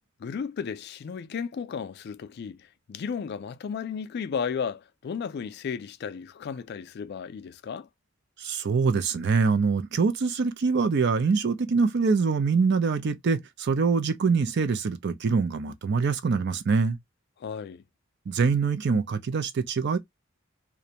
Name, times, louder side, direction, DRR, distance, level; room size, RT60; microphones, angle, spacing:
voice 1, 0.2-7.9 17.4-17.8, left 6 dB, 55° left, 0.3 m, -34 dB
voice 2, 8.4-17.0 18.3-20.0, right 5 dB, 60° right, 0.5 m, -24 dB
2.5 x 2.2 x 2.8 m
head